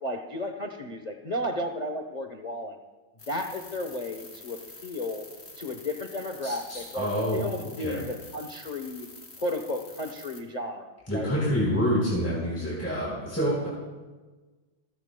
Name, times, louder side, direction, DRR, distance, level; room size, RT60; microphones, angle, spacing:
voice 1, 0.0-2.8 3.3-5.2 5.6-7.1 7.3-9.1 9.4-11.3, left 1 dB, 50° left, 4 dB, 0.4 m, -33 dB
sound 1, 3.2-10.4, left 3 dB, 25° left, 2.1 m, -47 dB
voice 2, 6.4-7.4 7.8-8.0 11.1-13.7, equal, 5° left, -6 dB, 4.0 m, -27 dB
28.0 x 14.0 x 2.2 m, 1.3 s
omnidirectional pair, 2.2 m